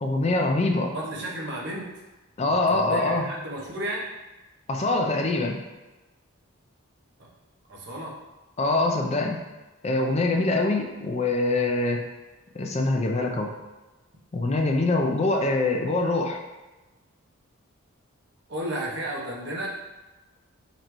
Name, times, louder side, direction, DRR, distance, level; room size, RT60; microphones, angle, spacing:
voice 1, 0.0-0.9 2.4-3.3 4.7-5.6 8.6-9.4 9.8-12.0 12.5-13.5 14.3-16.4, left 2 dB, 30° left, 2 dB, 0.4 m, -24 dB
voice 2, 0.9-1.9 2.7-4.1 7.7-8.1 18.5-19.7, right 1 dB, 50° right, -3 dB, 0.8 m, -33 dB
3.9 x 3.2 x 3.0 m, 1.1 s
head